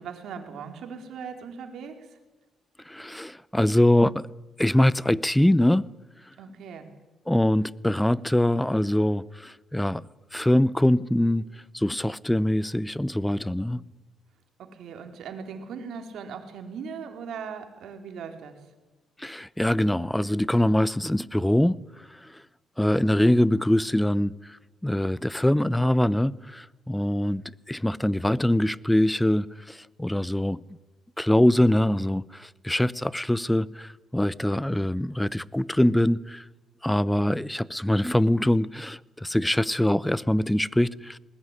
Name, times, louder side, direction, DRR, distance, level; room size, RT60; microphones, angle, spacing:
voice 1, 0.0-2.2 6.4-6.9 14.6-18.6, right 6 dB, 75° right, 4.0 m, -39 dB
voice 2, 2.9-4.3 4.6-5.9 7.3-10.0 10.3-11.5 11.7-13.8 19.2-22.4 22.8-24.6 24.8-27.4 27.7-30.6 31.2-36.4 36.8-41.2, left 1 dB, 5° left, 0.7 m, -23 dB
20.5 x 20.0 x 10.0 m
cardioid pair, 90°, 0 cm